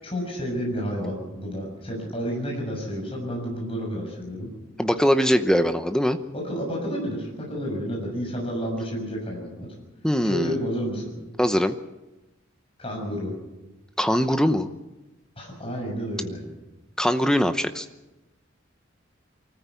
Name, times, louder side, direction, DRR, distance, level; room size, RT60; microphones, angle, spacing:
voice 1, 0.0-4.5 6.3-9.7 10.2-11.1 12.8-13.3 15.4-16.4, equal, 30° left, -1 dB, 6.6 m, -30 dB
voice 2, 4.8-6.2 10.0-10.5 11.4-11.7 14.0-14.7 17.0-17.9, equal, 5° left, 9 dB, 0.8 m, -21 dB
24.0 x 14.5 x 8.3 m, 1.0 s
head